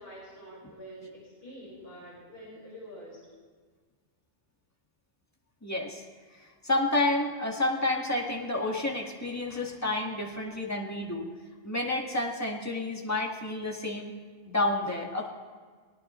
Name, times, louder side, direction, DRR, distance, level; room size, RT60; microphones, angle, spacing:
voice 1, 0.0-3.2, equal, 55° left, -6 dB, 5.2 m, -46 dB
voice 2, 5.6-6.0 6.6-11.3 11.6-14.1 14.5-15.3, left 2 dB, 15° left, 0 dB, 1.9 m, -30 dB
22.0 x 18.5 x 3.2 m, 1.5 s
omnidirectional pair, 1.2 m